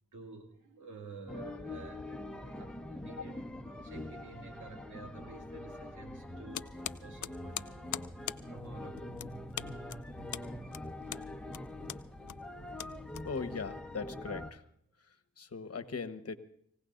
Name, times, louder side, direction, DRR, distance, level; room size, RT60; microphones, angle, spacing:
voice 1, 0.1-3.5 3.8-7.8 8.5-9.3, right 4 dB, 90° right, 2 dB, 2.4 m, -51 dB
sound 1, 1.3-14.5, left 1 dB, 5° left, 1.3 m, -44 dB
sound 2, 6.5-13.7, left 12 dB, 80° left, 0.5 m, -43 dB
voice 2, 13.2-14.6 15.1-16.4, left 5 dB, 55° left, 9 dB, 1.2 m, -40 dB
25.5 x 16.5 x 2.6 m, 0.72 s
cardioid pair, 40°, 29 cm